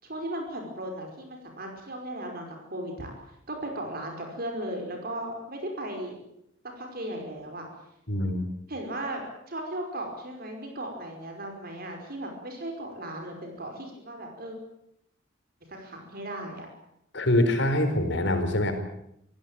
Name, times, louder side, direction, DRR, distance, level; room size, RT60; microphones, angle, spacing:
voice 1, 0.0-3.1 3.5-6.2 6.8-7.7 8.7-14.6 15.7-16.7, right 1 dB, 50° right, 3 dB, 5.4 m, -36 dB
voice 2, 8.1-8.4 17.1-18.7, left 1 dB, 65° left, 7 dB, 4.6 m, -24 dB
26.5 x 16.5 x 8.9 m, 0.78 s
head